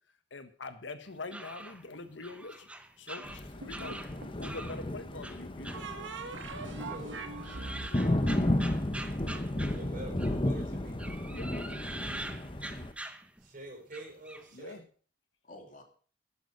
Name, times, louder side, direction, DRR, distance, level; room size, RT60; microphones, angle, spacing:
voice 1, 0.3-2.7 3.0-4.0 4.3-5.8 7.8-8.8 11.3-11.5 14.5-14.8, left 3 dB, 80° left, 10 dB, 1.5 m, -44 dB
sound 1, 1.1-4.8 5.2-6.5 6.8-10.5 10.9-13.5 13.9-14.5, right 1 dB, 5° right, 0.9 m, -44 dB
Thunder, 3.2-12.9, left 1 dB, 30° left, 1.2 m, -33 dB
sound 2, 3.6-4.5 5.7-9.4, right 3 dB, 90° right, 2.0 m, -42 dB
voice 2, 3.8-5.0 15.4-15.8, left 1 dB, 45° left, 3 dB, 2.8 m, -53 dB
voice 3, 6.8-7.2 9.5-10.9 13.4-14.8, right 1 dB, 45° right, 3 dB, 4.9 m, -46 dB
11.5 x 11.0 x 5.5 m, 0.41 s
head